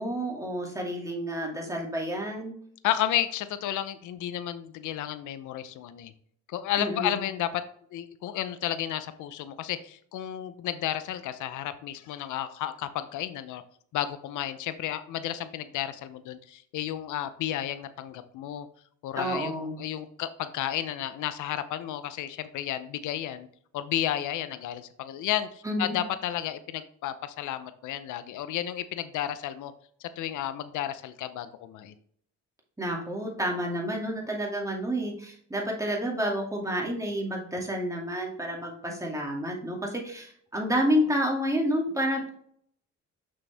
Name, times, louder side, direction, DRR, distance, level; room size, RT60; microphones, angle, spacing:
voice 1, 0.0-2.5 6.8-7.2 19.2-19.8 25.6-25.9 32.8-42.3, equal, 10° right, 0 dB, 2.3 m, -29 dB
voice 2, 2.8-6.1 6.5-7.6 7.9-13.6 13.9-18.7 19.0-23.5 23.7-29.7 30.0-32.0, left 12 dB, 80° left, 12 dB, 0.6 m, -32 dB
6.3 x 6.2 x 3.4 m, 0.63 s
cardioid pair, 90°, 30 cm